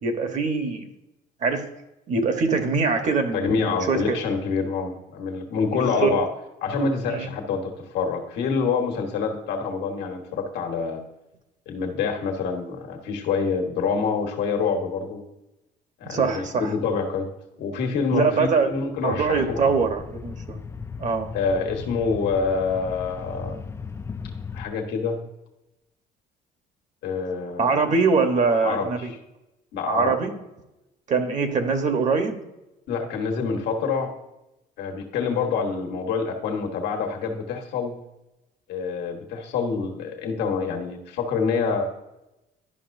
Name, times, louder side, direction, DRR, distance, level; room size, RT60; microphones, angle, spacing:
voice 1, 0.0-0.9 1.4-1.7 2.1-4.2 5.7-6.1 7.1-7.3 16.1-16.7 18.1-18.7 19.0-20.6 21.0-21.3 27.6-29.1 29.9-30.3 31.1-32.4, right 4 dB, 45° right, 6 dB, 1.1 m, -23 dB
voice 2, 3.3-6.3 6.6-11.0 11.7-15.2 16.0-17.3 17.6-19.6 21.3-23.6 24.5-25.2 27.0-27.8 28.6-29.2 29.7-30.1 32.9-34.1 34.8-38.0 38.7-41.9, left 5 dB, 80° left, 2 dB, 1.4 m, -26 dB
sound 1, 19.1-24.7, left 5 dB, 15° left, 0.3 m, -37 dB
11.0 x 5.5 x 2.6 m, 0.94 s
cardioid pair, 110°, 17 cm